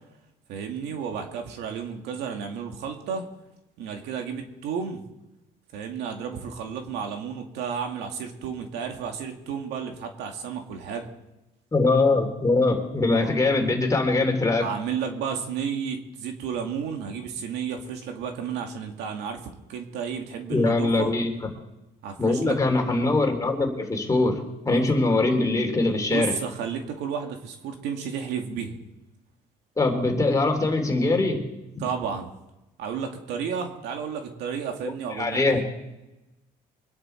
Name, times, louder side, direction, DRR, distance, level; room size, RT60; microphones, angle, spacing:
voice 1, 0.5-3.2 3.8-5.0 5.7-11.1 13.1-13.3 14.6-21.1 22.0-22.6 26.1-28.8 31.8-32.3 32.8-35.6, right 7 dB, 90° right, 4 dB, 2.2 m, -32 dB
voice 2, 11.7-14.6 20.5-21.3 22.2-26.3 29.8-31.5 31.7-31.8 35.2-35.6, left 2 dB, 20° left, 3 dB, 3.3 m, -22 dB
24.0 x 10.5 x 4.6 m, 0.97 s
cardioid pair, 110°, 17 cm